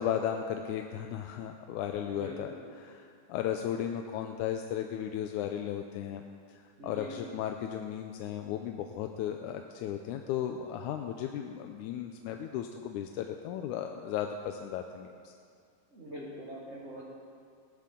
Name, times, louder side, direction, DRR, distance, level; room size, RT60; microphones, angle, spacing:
voice 1, 0.0-2.5 2.8-6.2 6.5-15.3, left 9 dB, 85° left, 5 dB, 2.1 m, -35 dB
voice 2, 2.1-2.7 6.8-7.2 15.9-17.0, equal, 30° right, -5 dB, 1.3 m, -43 dB
17.0 x 13.0 x 3.8 m, 2.2 s
omnidirectional pair, 3.5 m